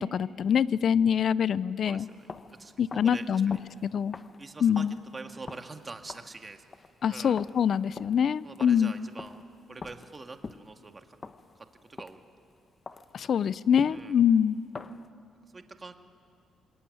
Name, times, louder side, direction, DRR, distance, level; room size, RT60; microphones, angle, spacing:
voice 1, 0.0-2.1 2.8-3.6 3.8-4.2 4.6-4.9 7.0-8.9 13.1-14.6, left 8 dB, 55° left, 18 dB, 0.6 m, -25 dB
sound 1, 2.1-12.4 12.9-15.1, left 4 dB, 35° left, 1.0 m, -46 dB
voice 2, 2.6-3.2 4.4-4.9 5.1-6.6 7.1-7.4 8.4-9.4 9.7-11.2 11.6-12.2 13.2-13.3 13.9-14.1 15.4-15.9, right 3 dB, 25° right, 6 dB, 1.9 m, -44 dB
26.5 x 21.0 x 9.7 m, 2.4 s
cardioid pair, 90°, 0 cm